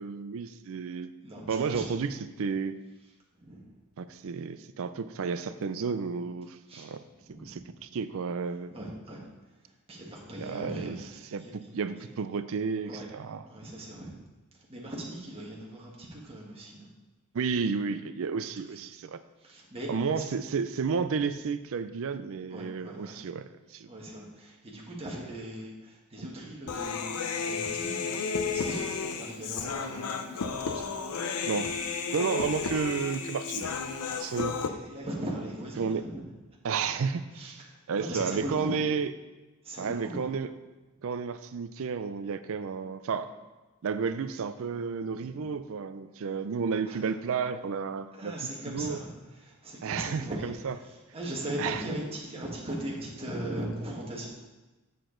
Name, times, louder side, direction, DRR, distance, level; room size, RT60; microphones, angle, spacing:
voice 1, 0.0-1.1 1.5-2.1 2.4-2.8 4.0-7.0 7.4-8.7 10.4-11.0 11.3-11.4 11.7-13.4 17.3-19.2 19.9-23.9 31.4-31.7 32.1-33.7 34.2-34.5 35.8-36.0 36.6-39.1 39.8-40.5 41.0-43.3 43.8-48.4 48.7-49.0 49.8-50.8 51.6-51.8, right 5 dB, 65° right, 12 dB, 0.4 m, -32 dB
voice 2, 1.2-1.9 3.4-3.6 6.7-6.9 7.3-7.8 8.7-9.2 9.9-12.1 12.9-13.1 13.5-14.2 14.7-16.9 19.4-20.3 21.0-21.1 22.5-23.1 23.9-28.1 28.4-31.0 34.2-36.2 36.9-37.1 37.3-38.8 39.6-40.3 45.2-45.5 46.9-47.0 48.2-50.8 51.1-54.3, right 1 dB, 25° right, -3 dB, 1.5 m, -39 dB
Human voice, 26.7-34.7, left 5 dB, 85° left, 0.6 m, -32 dB
7.9 x 6.7 x 3.8 m, 1.1 s
head